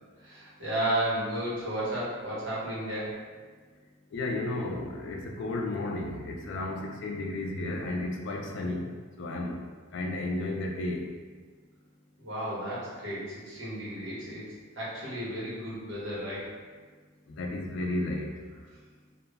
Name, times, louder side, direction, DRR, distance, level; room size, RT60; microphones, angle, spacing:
voice 1, 0.2-3.1 12.2-14.4 14.7-16.5, right 1 dB, 55° right, -7 dB, 0.9 m, -33 dB
voice 2, 4.1-8.9 9.2-9.6 9.9-11.0 17.3-18.4, left 2 dB, 55° left, 1 dB, 0.3 m, -33 dB
2.2 x 2.0 x 3.3 m, 1.4 s
head